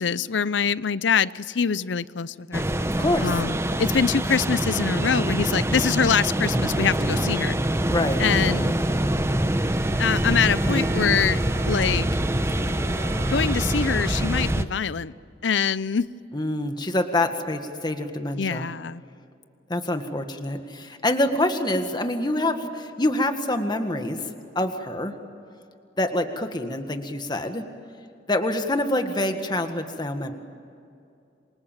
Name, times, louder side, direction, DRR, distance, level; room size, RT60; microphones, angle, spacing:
voice 1, 0.0-2.7 3.2-7.6 8.2-8.7 10.0-11.4 11.7-12.1 13.3-15.1 15.4-16.1 18.4-19.0, left 6 dB, 85° left, 18 dB, 0.6 m, -24 dB
sound 1, 2.5-14.6, right 1 dB, 15° right, 0.9 m, -24 dB
voice 2, 3.0-3.3 7.9-8.2 16.3-18.7 19.7-24.2 24.6-25.1 26.0-27.6 28.3-30.3, left 1 dB, 25° left, 6 dB, 1.8 m, -26 dB
Bowed string instrument, 9.6-14.8, right 4 dB, 60° right, 1.5 m, -41 dB
28.0 x 24.5 x 7.3 m, 2.5 s
head